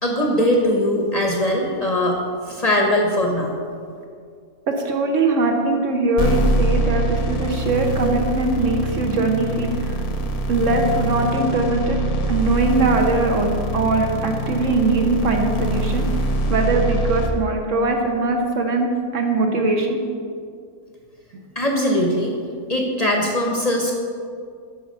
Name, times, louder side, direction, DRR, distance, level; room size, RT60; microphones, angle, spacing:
voice 1, 0.0-2.2 2.5-3.5 21.6-22.4 22.7-23.9, left 1 dB, 35° left, 0 dB, 0.8 m, -20 dB
voice 2, 4.7-10.0 10.5-12.0 12.3-16.0 16.5-18.9 19.1-20.0 21.3-21.4, right 3 dB, 60° right, 2 dB, 1.2 m, -21 dB
sound 1, 6.2-17.3, right 1 dB, 85° left, 1.4 m, -23 dB
7.9 x 5.8 x 5.4 m, 2.3 s
omnidirectional pair, 1.5 m